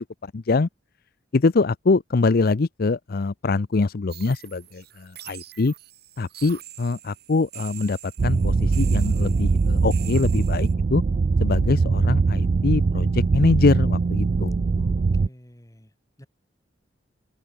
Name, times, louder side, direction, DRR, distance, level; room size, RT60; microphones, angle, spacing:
voice 1, 0.2-0.7 1.3-5.7 6.2-11.0 11.4-14.6, left 3 dB, 50° left, 0.6 m, -23 dB
sound 1, 4.1-10.7, right 13 dB, 55° right, 5.5 m, -44 dB
sound 2, 8.2-15.3, right 4 dB, 40° right, 0.3 m, -21 dB
voice 2, 14.8-15.9 16.2-16.3, equal, 20° left, 2.5 m, -49 dB
open air
head